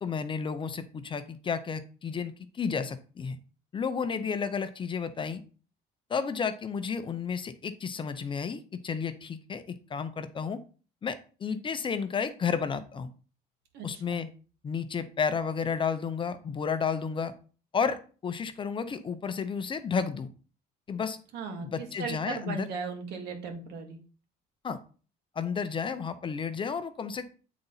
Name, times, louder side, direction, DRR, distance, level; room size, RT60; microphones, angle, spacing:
voice 1, 0.0-3.4 3.7-5.4 6.1-10.6 11.0-13.1 13.8-14.3 14.6-17.3 17.7-20.3 20.9-21.2 21.6-22.7 24.6-24.8 25.4-27.2, left 6 dB, 30° left, 11 dB, 0.6 m, -32 dB
voice 2, 13.7-14.2 21.3-21.7 22.0-24.0, right 4 dB, 75° right, 3 dB, 1.9 m, -37 dB
8.5 x 3.9 x 4.0 m, 0.37 s
cardioid pair, 130°, 17 cm